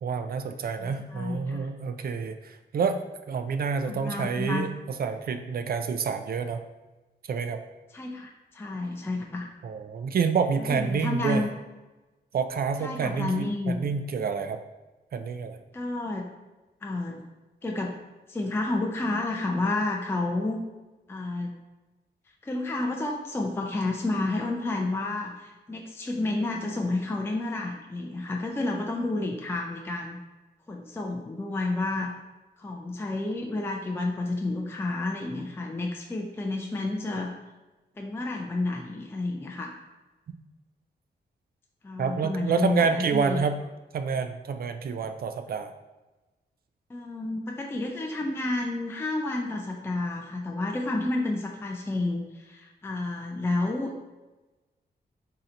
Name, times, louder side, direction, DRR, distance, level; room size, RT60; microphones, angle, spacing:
voice 1, 0.0-3.0 3.3-6.6 7.3-7.6 9.6-11.5 12.3-14.6 15.1-15.6 42.0-43.6 43.9-45.7, right 5 dB, 55° right, 8 dB, 0.4 m, -28 dB
voice 2, 0.8-1.7 2.9-3.0 3.9-4.7 7.9-9.5 10.7-11.5 12.8-13.8 15.7-16.3 16.8-17.2 17.6-18.0 18.3-20.6 21.1-21.5 22.4-30.2 30.7-32.1 32.6-37.3 38.0-39.7 41.8-43.4 46.9-53.9, left 2 dB, 15° left, 1 dB, 0.4 m, -30 dB
3.8 x 2.8 x 4.3 m, 1.1 s
wide cardioid pair, 120°, 18 cm